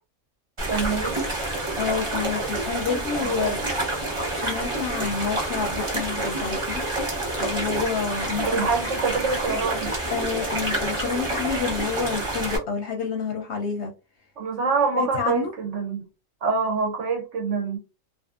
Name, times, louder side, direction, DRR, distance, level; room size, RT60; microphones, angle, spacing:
sound 1, 0.6-12.6, right 2 dB, 25° right, 0.9 m, -28 dB
voice 1, 0.7-1.2 3.2-3.5 8.4-9.9 14.4-16.0 16.4-17.8, right 5 dB, 65° right, 0.9 m, -26 dB
voice 2, 1.8-3.6 4.3-6.8 7.4-8.7 10.1-13.9 14.9-15.5, left 5 dB, 65° left, 0.7 m, -28 dB
2.5 x 2.4 x 2.4 m
omnidirectional pair, 1.5 m